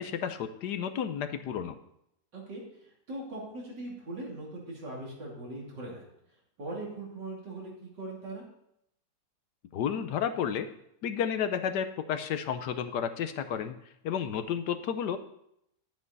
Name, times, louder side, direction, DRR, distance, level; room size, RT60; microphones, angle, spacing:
voice 1, 0.0-1.8 9.7-10.7 11.0-13.8 14.0-15.2, left 8 dB, 75° left, 9 dB, 1.4 m, -31 dB
voice 2, 2.3-6.1 6.6-8.4, right 2 dB, 85° right, -3 dB, 3.8 m, -40 dB
10.5 x 8.8 x 4.1 m, 0.76 s
omnidirectional pair, 1.8 m